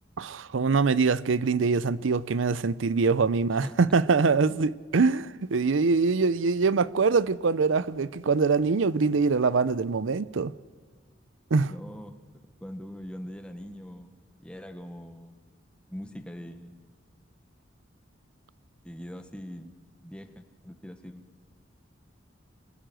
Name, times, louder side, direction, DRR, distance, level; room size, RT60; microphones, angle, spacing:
voice 1, 0.2-10.5 11.5-11.7, right 4 dB, 80° right, 0.6 m, -24 dB
voice 2, 11.7-12.2 12.6-15.4 15.9-16.8 18.8-19.7 20.0-21.3, equal, 5° left, 1.3 m, -42 dB
24.0 x 16.0 x 7.7 m
head